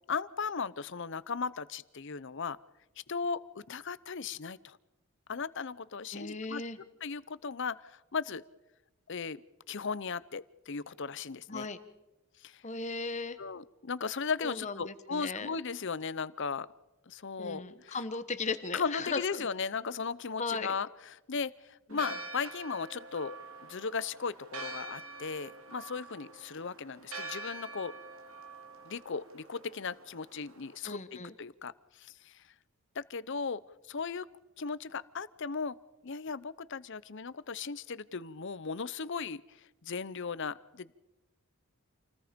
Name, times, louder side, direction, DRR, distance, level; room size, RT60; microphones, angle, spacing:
voice 1, 0.1-2.6 3.1-4.8 5.3-6.6 7.0-8.4 9.1-9.4 9.7-11.7 12.4-12.6 13.4-16.7 17.1-18.0 18.7-27.9 28.8-32.4 32.9-33.6 33.9-34.3 34.6-35.8 36.0-40.9, left 5 dB, 55° left, 18 dB, 0.7 m, -37 dB
voice 2, 6.1-6.8 11.5-11.8 12.6-13.4 14.4-15.5 17.4-19.5 20.4-20.7 21.9-22.0 30.8-31.3, left 4 dB, 35° left, 11 dB, 1.2 m, -37 dB
Church bell, 21.9-30.8, right 3 dB, 70° right, 3.0 m, -46 dB
28.5 x 19.5 x 5.2 m, 1.0 s
head